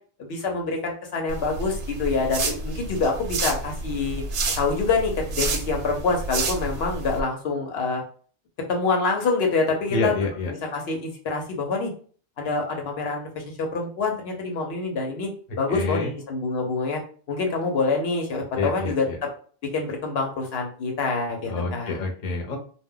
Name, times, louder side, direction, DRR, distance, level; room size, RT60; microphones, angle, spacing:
voice 1, 0.2-4.2 4.6-8.0 8.7-10.1 10.7-11.9 12.4-15.3 15.6-17.0 17.3-19.0 19.7-21.9, left 4 dB, 85° left, 2 dB, 1.0 m, -26 dB
sound 1, 1.3-7.2, right 3 dB, 85° right, 0.8 m, -30 dB
voice 2, 9.9-10.5 15.7-16.1 18.5-19.2 21.5-22.6, left 3 dB, 45° left, 1 dB, 0.7 m, -27 dB
2.2 x 2.1 x 3.6 m, 0.43 s
omnidirectional pair, 1.0 m